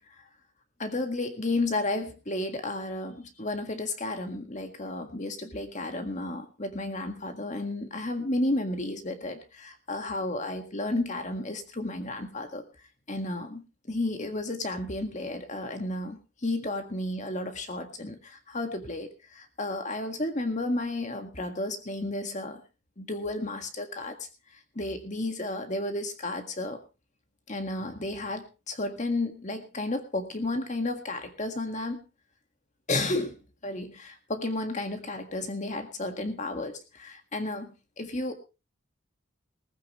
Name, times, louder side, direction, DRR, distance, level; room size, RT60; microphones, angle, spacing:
voice 1, 0.8-12.6 13.1-22.6 23.0-24.2 24.8-26.8 27.5-32.0 32.9-33.4 33.6-38.3, left 2 dB, 35° left, 6 dB, 1.8 m, -32 dB
19.0 x 14.5 x 3.1 m, 0.30 s
head